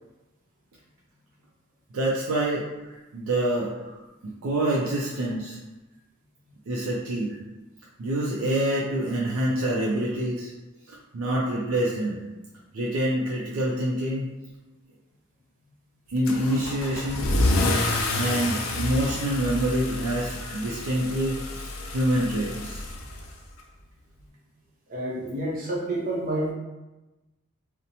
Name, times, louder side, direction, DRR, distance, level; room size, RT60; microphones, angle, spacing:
voice 1, 1.9-2.7 3.1-3.7 4.2-5.6 6.7-7.4 8.0-10.5 10.9-12.2 12.7-14.3 16.1-17.3 18.1-22.8, right 1 dB, 85° right, -4 dB, 0.4 m, -26 dB
Car / Engine starting / Accelerating revving vroom, 16.2-23.6, left 2 dB, 85° left, 0.4 m, -28 dB
voice 2, 24.9-26.5, right 1 dB, 40° right, -5 dB, 0.6 m, -29 dB
2.8 x 2.0 x 2.7 m, 1.1 s
head